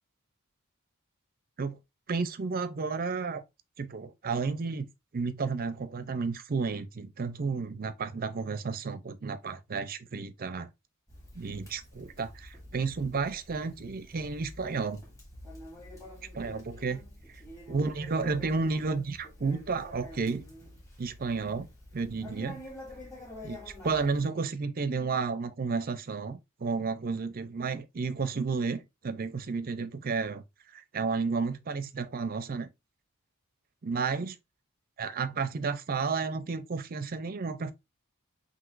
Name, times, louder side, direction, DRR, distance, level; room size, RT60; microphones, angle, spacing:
voice 1, 2.1-3.4 3.8-10.7 11.3-15.0 16.3-17.0 17.7-20.4 21.0-21.7 21.9-22.6 23.4-30.4 30.7-32.7 33.8-34.3 35.0-37.7, right 4 dB, 40° right, 0.5 m, -32 dB
Conversation, 11.1-24.3, left 1 dB, 15° left, 1.9 m, -48 dB
6.0 x 2.8 x 2.5 m
head